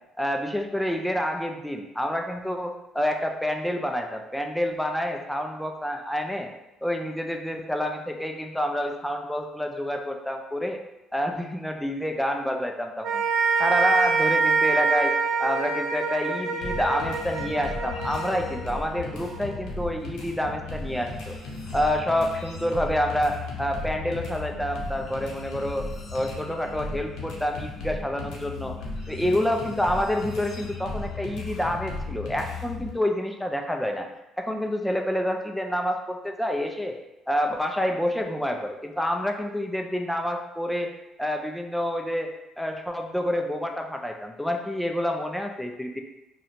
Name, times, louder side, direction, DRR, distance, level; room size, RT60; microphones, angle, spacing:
voice 1, 0.2-6.5 6.8-10.8 11.1-13.2 13.6-21.4 21.7-28.8 29.1-34.1 34.4-36.9 37.3-40.9 41.2-42.3 42.6-46.0, equal, 5° left, 3 dB, 0.3 m, -28 dB
sound 1, 13.0-19.5, right 4 dB, 65° right, 0.4 m, -26 dB
sound 2, 16.6-32.9, left 3 dB, 70° left, 0.6 m, -36 dB
2.6 x 2.1 x 2.8 m, 0.93 s
cardioid pair, 90°, 0 cm